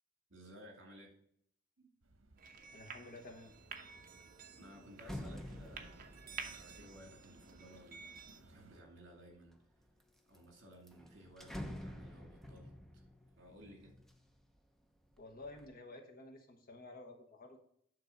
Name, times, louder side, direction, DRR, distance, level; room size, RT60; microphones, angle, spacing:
voice 1, 0.3-1.2 1.8-1.9 4.6-9.6 10.3-13.1 13.4-14.0, equal, 65° right, 2 dB, 2.3 m, -57 dB
sound 1, 2.0-8.8, right 2 dB, 90° right, 0.9 m, -64 dB
sound 2, 2.4-8.4, right 6 dB, 45° right, 0.9 m, -51 dB
sound 3, 2.6-3.0 3.4-8.7 9.3-10.0 10.3-10.4 10.7-14.6 15.0-15.7, equal, ahead, 0.7 m, -50 dB
voice 2, 2.7-3.5 15.2-17.6, left 2 dB, 50° left, 4 dB, 1.2 m, -52 dB
9.5 x 4.0 x 5.2 m, 0.67 s
head